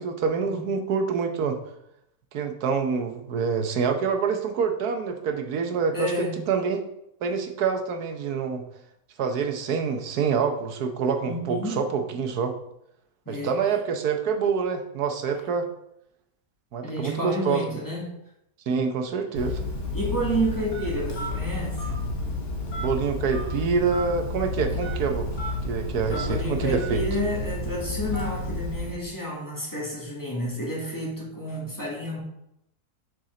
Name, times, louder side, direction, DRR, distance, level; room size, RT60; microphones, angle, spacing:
voice 1, 0.0-1.6 2.3-6.8 7.2-8.6 9.2-12.5 13.3-15.7 16.7-17.7 18.7-19.6 22.8-25.3 25.6-27.0, right 5 dB, 75° right, 6 dB, 1.4 m, -26 dB
voice 2, 5.9-6.4 11.3-11.8 13.3-13.6 16.8-18.1 18.7-18.8 19.9-22.0 26.1-32.2, equal, 10° left, -4 dB, 2.0 m, -30 dB
Telephone, 19.4-29.1, left 2 dB, 50° left, 1.4 m, -31 dB
7.3 x 5.4 x 3.9 m, 0.78 s
omnidirectional pair, 1.7 m